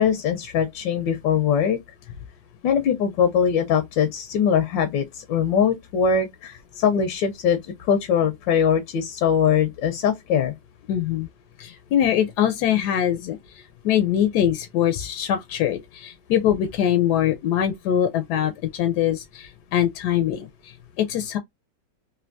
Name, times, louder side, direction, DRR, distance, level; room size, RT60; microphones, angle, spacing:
voice 1, 0.0-1.8 2.6-7.6 7.9-10.5, left 7 dB, 90° left, 1.4 m, -21 dB
voice 2, 10.9-11.3 11.6-13.4 13.8-21.4, left 10 dB, 75° left, 1.0 m, -23 dB
3.3 x 2.6 x 2.6 m
omnidirectional pair, 1.9 m